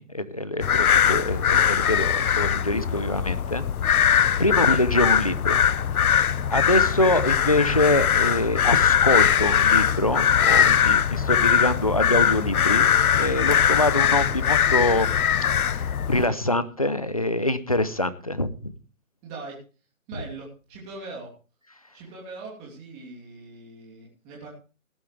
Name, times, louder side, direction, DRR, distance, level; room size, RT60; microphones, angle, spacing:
voice 1, 0.0-5.6 6.5-15.1 15.6-18.7, left 1 dB, 25° left, 13 dB, 0.5 m, -25 dB
sound 1, 0.6-16.3, left 8 dB, 80° left, 0.8 m, -21 dB
voice 2, 19.2-19.6 20.1-21.3 21.9-24.5, right 3 dB, 15° right, -3 dB, 2.9 m, -41 dB
17.5 x 10.5 x 3.2 m, 0.35 s
hypercardioid pair, 165°, 43 cm